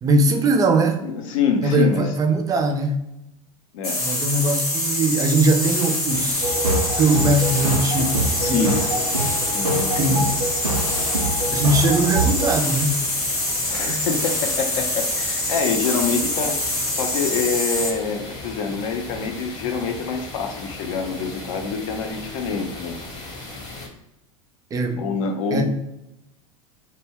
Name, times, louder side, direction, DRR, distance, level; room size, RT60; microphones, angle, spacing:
voice 1, 0.0-1.0 1.6-3.0 4.0-6.5 7.0-8.8 10.0-10.2 11.5-13.0 24.7-25.0 25.5-25.6, right 2 dB, 20° right, 3 dB, 0.4 m, -20 dB
voice 2, 1.0-2.1 3.7-4.0 8.4-8.8 9.5-10.2 13.7-23.0 25.0-25.6, left 5 dB, 60° left, 4 dB, 0.5 m, -26 dB
sound 1, 3.8-18.0, left 1 dB, 85° left, 0.9 m, -25 dB
sound 2, 6.1-23.9, left 2 dB, 25° left, 0.9 m, -37 dB
sound 3, 6.4-12.5, right 2 dB, 85° right, 0.5 m, -25 dB
2.2 x 2.1 x 3.4 m, 0.87 s
figure-of-eight pair, 80°, 19 cm